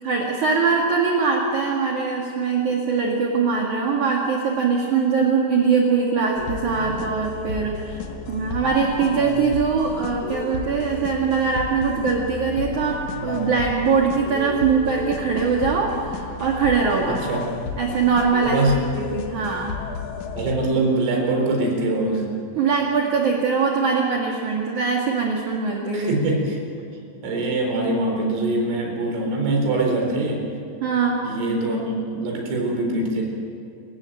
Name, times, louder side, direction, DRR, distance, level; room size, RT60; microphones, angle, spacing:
voice 1, 0.0-8.0 8.3-17.2 17.8-18.6 18.9-19.7 22.6-26.2 30.8-31.2, right 5 dB, 50° right, -1 dB, 2.7 m, -22 dB
sound 1, 6.4-20.6, left 5 dB, 65° left, 1.8 m, -32 dB
voice 2, 18.4-18.8 20.3-22.3 25.9-26.6 27.2-30.4 31.2-33.2, right 2 dB, 80° right, 1 dB, 6.6 m, -23 dB
28.5 x 15.0 x 9.1 m, 2.4 s
omnidirectional pair, 5.6 m